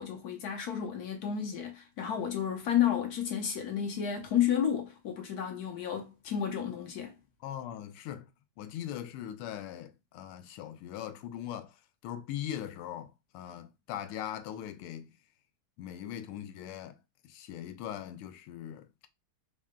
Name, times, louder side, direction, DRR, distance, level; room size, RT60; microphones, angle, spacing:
voice 1, 0.0-7.2, left 9 dB, 65° left, 0.9 m, -31 dB
voice 2, 7.4-8.3 8.6-11.7 12.0-15.1 15.8-17.0 17.2-18.9, left 10 dB, 85° left, 1.5 m, -40 dB
4.5 x 2.2 x 3.6 m
omnidirectional pair, 2.4 m